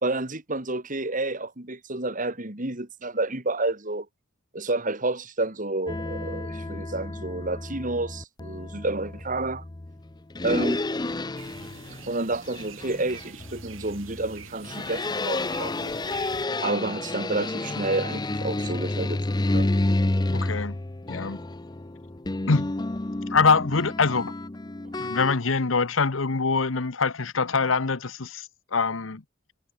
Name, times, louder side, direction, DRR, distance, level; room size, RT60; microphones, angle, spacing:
voice 1, 0.0-4.1 4.5-9.6 10.4-10.8 11.9-15.9 16.6-19.2 19.5-19.7, right 2 dB, 40° right, 3.2 m, -30 dB
sound 1, 5.9-25.4, left 2 dB, 20° left, 0.6 m, -30 dB
sound 2, 11.4-16.5, right 5 dB, 75° right, 3.9 m, -46 dB
voice 2, 20.3-20.8 21.1-21.4 22.5-22.7 23.3-24.3 25.0-28.4 28.7-29.2, left 4 dB, 75° left, 1.1 m, -24 dB
head